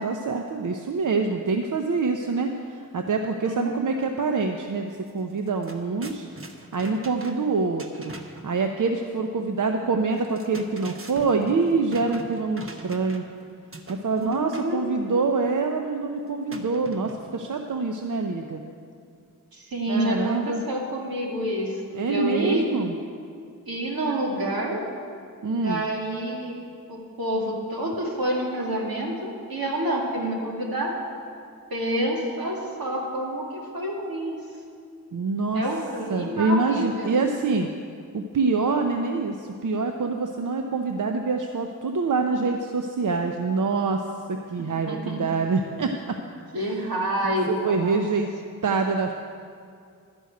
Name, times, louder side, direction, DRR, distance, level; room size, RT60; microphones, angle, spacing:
voice 1, 0.0-6.3 6.7-8.1 8.4-13.2 13.9-18.6 19.9-20.6 21.9-22.9 25.4-25.8 35.1-35.6 36.1-37.7 38.1-44.0 44.3-46.2 46.6-46.9 47.2-47.3 47.6-48.3 48.6-49.1, right 4 dB, 60° right, 4 dB, 0.7 m, -25 dB
voice 2, 3.4-3.9 14.2-14.9 19.5-22.7 23.7-24.8 25.5-26.6 26.9-30.9 31.7-34.4 35.5-37.1 44.9-45.2 46.5-48.0, right 1 dB, 85° right, -2 dB, 2.3 m, -28 dB
sound 1, 5.0-5.1 5.4-8.5 10.2-13.4 13.7-14.7 16.5-17.4, right 2 dB, 40° right, 1.1 m, -42 dB
11.5 x 6.2 x 9.4 m, 2.3 s
cardioid pair, 50°, 35 cm